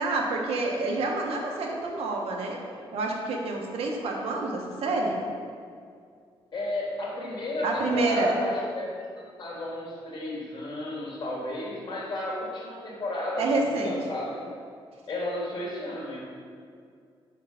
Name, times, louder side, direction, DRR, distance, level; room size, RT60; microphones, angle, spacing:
voice 1, 0.0-2.6 2.9-5.2 7.6-8.4 13.4-13.9, right 2 dB, 80° right, 0 dB, 0.9 m, -28 dB
voice 2, 6.5-8.9 9.2-14.4 15.1-16.2, left 1 dB, 50° left, -4 dB, 1.5 m, -33 dB
4.5 x 4.3 x 4.9 m, 2.2 s
cardioid pair, 140°, 10 cm